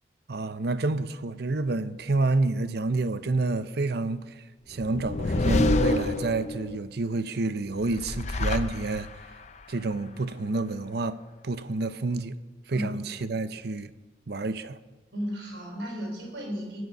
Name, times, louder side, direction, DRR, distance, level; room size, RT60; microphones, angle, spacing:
voice 1, 0.3-9.1 9.7-11.2 11.4-12.4 12.7-13.9 14.3-14.8, right 3 dB, 60° right, 0.6 m, -29 dB
sound 1, 4.8-6.8 7.8-9.3, left 2 dB, 40° left, 0.6 m, -27 dB
voice 2, 15.1-16.8, equal, 75° right, 4.4 m, -34 dB
19.0 x 6.6 x 5.5 m
head